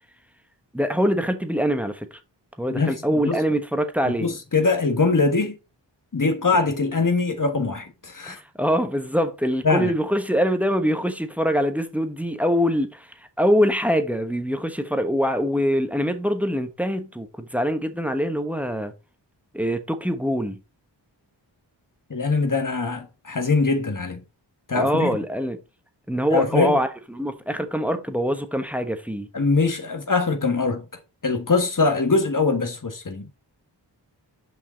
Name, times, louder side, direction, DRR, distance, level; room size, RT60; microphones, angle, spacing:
voice 1, 0.7-2.2 2.6-4.3 8.2-18.9 19.5-20.6 24.7-25.6 26.1-29.3, equal, 5° right, 1.2 m, -24 dB
voice 2, 2.7-3.4 4.0-5.6 6.1-8.4 9.6-9.9 22.1-24.2 24.7-25.2 26.3-26.7 29.3-30.8 31.2-33.3, left 4 dB, 45° left, 1.5 m, -22 dB
6.0 x 5.4 x 4.0 m
cardioid pair, 40°, 44 cm